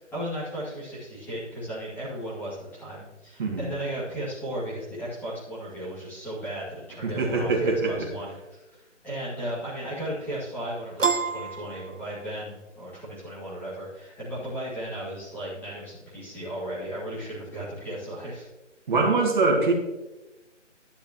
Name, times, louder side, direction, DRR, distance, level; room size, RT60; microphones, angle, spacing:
voice 1, 0.1-8.6 9.0-18.5, right 1 dB, 5° left, -11 dB, 2.2 m, -35 dB
voice 2, 7.0-8.1 18.9-19.7, right 3 dB, 40° right, 0 dB, 2.3 m, -23 dB
Piano, 11.0-12.5, right 5 dB, 90° right, 1.2 m, -28 dB
12.0 x 10.5 x 3.0 m, 1.1 s
figure-of-eight pair, 160°, 37 cm